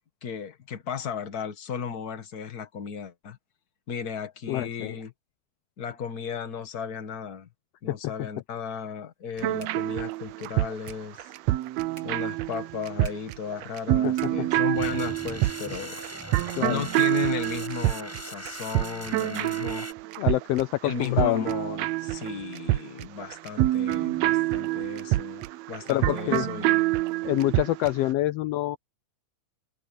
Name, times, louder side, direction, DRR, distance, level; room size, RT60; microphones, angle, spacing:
voice 1, 0.2-3.4 3.9-5.1 5.8-7.5 7.8-11.3 12.0-16.0 16.7-19.9 20.8-26.8, left 7 dB, 35° left, 1.8 m, -35 dB
voice 2, 4.5-5.0 7.9-8.0 14.0-14.1 16.6-16.8 20.2-21.5 25.9-26.5 27.2-28.8, left 16 dB, 80° left, 1.5 m, -26 dB
sound 1, 8.2-19.8, right 4 dB, 35° right, 2.9 m, -57 dB
sound 2, 9.4-28.0, right 17 dB, 75° right, 1.7 m, -27 dB
sound 3, 14.7-19.9, equal, 5° right, 5.0 m, -40 dB
omnidirectional pair, 3.4 m